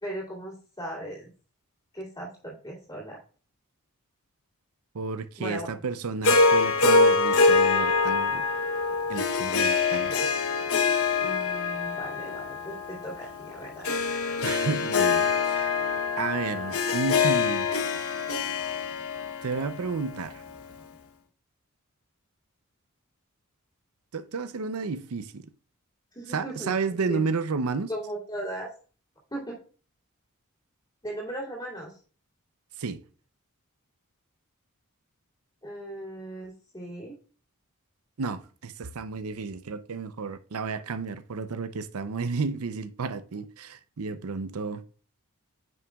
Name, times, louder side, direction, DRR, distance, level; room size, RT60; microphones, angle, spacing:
voice 1, 0.0-1.3 1.9-3.2 5.4-5.7 11.2-13.9 26.1-27.2 27.9-28.7 29.3-29.6 31.0-32.0 35.6-37.2, right 1 dB, 20° left, 2.5 m, -37 dB
voice 2, 4.9-8.4 9.1-10.2 14.4-15.8 16.2-17.7 19.4-20.4 24.1-25.4 26.3-27.9 32.8-33.0 38.2-44.8, right 4 dB, 75° right, 0.6 m, -32 dB
Harp, 6.2-20.6, left 4 dB, 70° left, 0.9 m, -25 dB
9.1 x 5.8 x 2.3 m
head